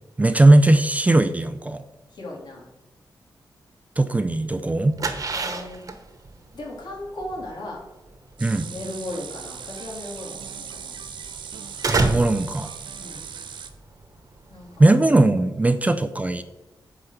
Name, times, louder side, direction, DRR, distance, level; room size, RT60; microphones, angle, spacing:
voice 1, 0.2-1.8 4.0-5.0 8.4-8.7 11.9-12.7 14.8-16.4, right 2 dB, 20° right, 11 dB, 0.5 m, -18 dB
voice 2, 2.1-2.6 5.3-5.8 6.5-7.8 8.4-11.0 13.0-13.3 14.5-14.9 15.8-15.9, left 1 dB, 70° left, -3 dB, 3.3 m, -37 dB
sound 1, 4.6-14.9, right 3 dB, 45° right, 1.2 m, -31 dB
sound 2, 8.4-13.7, right 7 dB, 85° right, 0.8 m, -38 dB
9.6 x 5.1 x 8.0 m, 1.0 s
wide cardioid pair, 130°, 8 cm